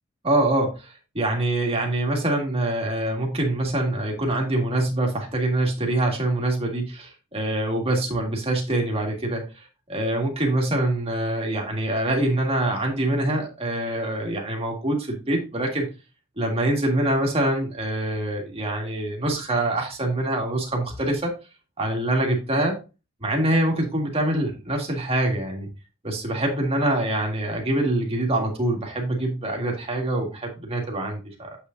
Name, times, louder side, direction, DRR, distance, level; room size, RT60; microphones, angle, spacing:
voice 1, 0.2-15.9 16.4-21.3 21.8-22.8 23.2-25.7 26.0-31.6, right 1 dB, 25° right, 1 dB, 1.8 m, -25 dB
7.9 x 5.8 x 2.5 m, 0.30 s
head